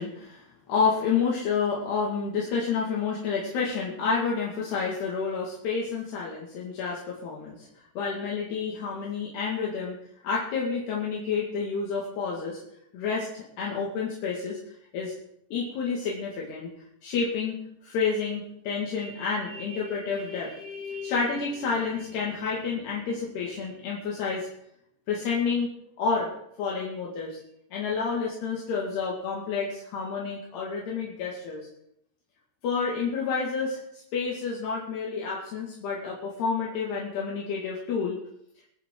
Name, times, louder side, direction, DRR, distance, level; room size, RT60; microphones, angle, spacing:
voice 1, 0.0-7.7 8.0-10.0 10.2-12.6 12.9-14.6 14.9-15.1 15.5-16.7 17.0-17.6 17.8-24.5 25.1-25.7 26.0-26.3 26.6-27.4 27.7-31.7 32.6-38.2, left 5 dB, 70° left, -3 dB, 4.0 m, -29 dB
24.0 x 9.4 x 3.8 m, 0.74 s
omnidirectional pair, 5.1 m